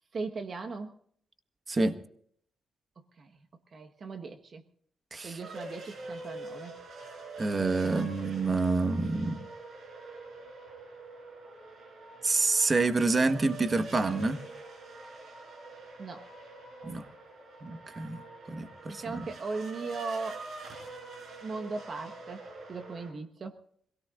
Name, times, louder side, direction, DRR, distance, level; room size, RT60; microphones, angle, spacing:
voice 1, 0.1-0.9 3.0-3.5 3.7-4.6 5.2-6.8 16.0-16.3 18.9-20.4 21.4-23.6, right 4 dB, 50° right, 5 dB, 1.3 m, -38 dB
voice 2, 1.7-2.0 5.1-5.4 7.4-9.4 12.2-14.4 16.8-17.0 17.6-19.3, right 3 dB, 35° right, 8 dB, 1.4 m, -28 dB
sound 1, 5.4-23.1, right 2 dB, 65° right, 6.5 m, -45 dB
26.0 x 17.5 x 2.5 m, 0.63 s
cardioid pair, 75°, 0 cm